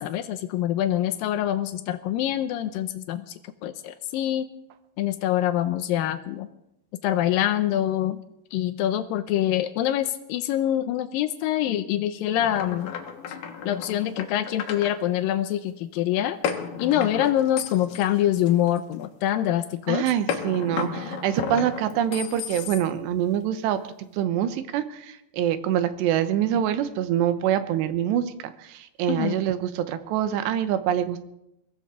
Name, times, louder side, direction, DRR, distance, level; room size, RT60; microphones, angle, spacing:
voice 1, 0.0-3.3 3.6-4.5 5.0-6.5 7.0-8.2 8.5-12.9 13.7-16.4 16.8-20.0 29.1-29.4, left 12 dB, 85° left, 10 dB, 2.0 m, -25 dB
sound 1, 12.4-14.9 16.4-19.1 20.3-23.1, left 7 dB, 65° left, 2.7 m, -33 dB
voice 2, 19.9-23.8 24.1-31.2, right 10 dB, 85° right, 10 dB, 3.1 m, -25 dB
23.0 x 16.0 x 3.7 m, 0.84 s
omnidirectional pair, 4.9 m